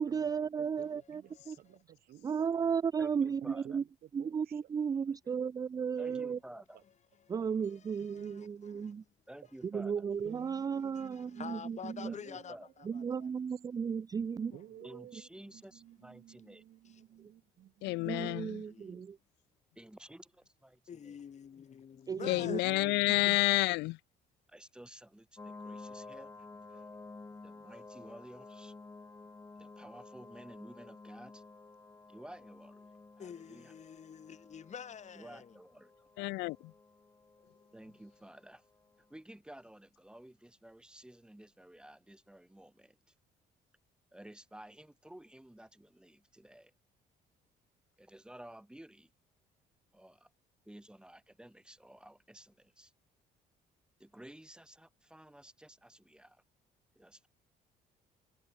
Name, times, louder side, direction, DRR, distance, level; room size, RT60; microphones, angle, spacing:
voice 1, 0.0-1.2 1.5-1.6 2.2-3.8 4.1-6.4 7.3-9.0 9.7-12.1 12.9-14.5 18.0-19.2 22.1-22.6 23.3-23.4, right 6 dB, 20° right, 0.3 m, -34 dB
voice 2, 0.6-2.3 3.4-4.7 5.2-5.4 6.1-6.4 6.7-6.8 7.3-7.5 10.2-12.7 14.5-18.7 22.3-23.3, right 12 dB, 65° right, 3.0 m, -54 dB
voice 3, 1.3-1.8 7.2-7.4 7.6-9.1 10.9-13.3 14.5-14.6 16.8-17.2 18.7-19.1 20.9-23.1 33.2-35.6, left 7 dB, 45° left, 7.5 m, -49 dB
voice 4, 3.0-3.8 6.0-6.8 9.3-10.0 12.0-12.7 14.8-16.6 19.8-21.1 24.5-26.3 26.7-26.8 27.4-28.7 29.6-31.4 32.1-32.9 33.2-33.7 35.1-36.1 37.7-38.6 39.0-43.0 44.1-46.7 48.0-49.1 49.9-50.3 50.6-52.9 54.0-56.4 57.0-57.3, right 1 dB, 5° right, 2.6 m, -53 dB
voice 5, 17.8-18.5 22.2-24.0 36.2-36.6, left 22 dB, 85° left, 0.5 m, -29 dB
sound 1, 25.4-39.0, left 3 dB, 20° left, 4.0 m, -52 dB
cardioid pair, 110°, 17 cm